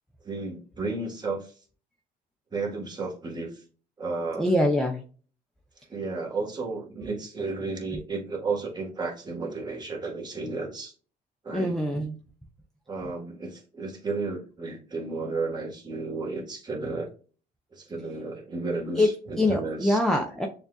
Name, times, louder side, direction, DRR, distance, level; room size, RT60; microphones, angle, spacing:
voice 1, 0.2-1.5 2.5-3.6 4.0-4.4 5.9-10.9 11.4-11.7 12.9-17.1 17.7-20.0, right 3 dB, 25° right, -1 dB, 1.5 m, -33 dB
voice 2, 4.4-5.0 11.5-12.1 18.9-19.1 19.4-20.5, left 1 dB, 5° left, 0 dB, 0.6 m, -24 dB
6.8 x 2.5 x 2.3 m, 0.39 s
cardioid pair, 110°, 17 cm